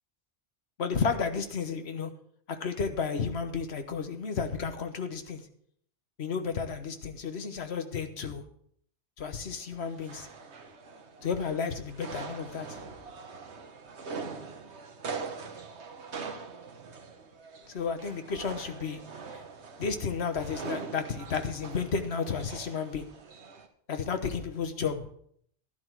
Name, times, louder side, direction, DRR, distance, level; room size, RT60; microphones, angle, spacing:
voice 1, 0.8-2.1 2.5-5.4 6.2-8.4 9.2-10.3 11.2-12.8 17.7-19.0 19.3-19.4 19.8-23.1 23.9-25.1, left 5 dB, 70° left, 7 dB, 1.4 m, -32 dB
sound 1, 9.5-23.7, right 4 dB, 75° right, 1.4 m, -43 dB
11.5 x 11.5 x 4.7 m, 0.65 s
omnidirectional pair, 1.1 m